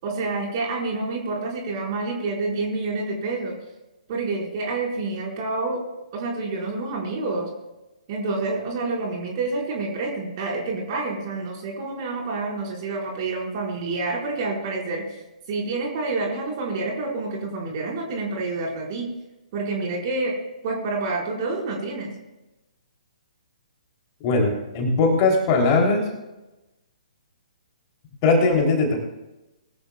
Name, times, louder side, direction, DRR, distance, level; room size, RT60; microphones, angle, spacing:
voice 1, 0.0-3.5 4.1-5.8 6.1-7.5 8.1-15.2 15.5-19.1 19.5-20.3 20.6-22.1, right 3 dB, 35° right, -2 dB, 5.0 m, -28 dB
voice 2, 24.2-26.1 28.2-29.0, left 3 dB, 30° left, 1 dB, 3.3 m, -20 dB
21.5 x 14.0 x 2.4 m, 1.0 s
figure-of-eight pair, 125°, 4 cm